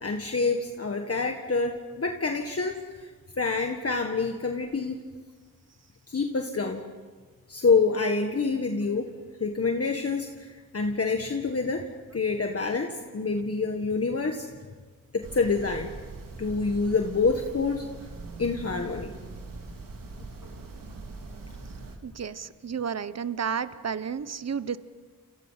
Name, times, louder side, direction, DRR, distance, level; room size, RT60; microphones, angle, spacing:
voice 1, 0.0-3.1 3.4-5.0 6.1-6.8 7.5-9.1 9.4-11.9 12.1-12.9 13.1-14.5 15.1-15.9 16.4-17.9 18.4-19.1, left 4 dB, 40° left, 4 dB, 1.7 m, -27 dB
sound 1, 15.2-22.0, right 3 dB, 65° right, 3.9 m, -42 dB
voice 2, 22.0-24.8, right 7 dB, 45° right, 14 dB, 1.0 m, -32 dB
30.0 x 28.5 x 5.9 m, 1.5 s
wide cardioid pair, 110°, 35 cm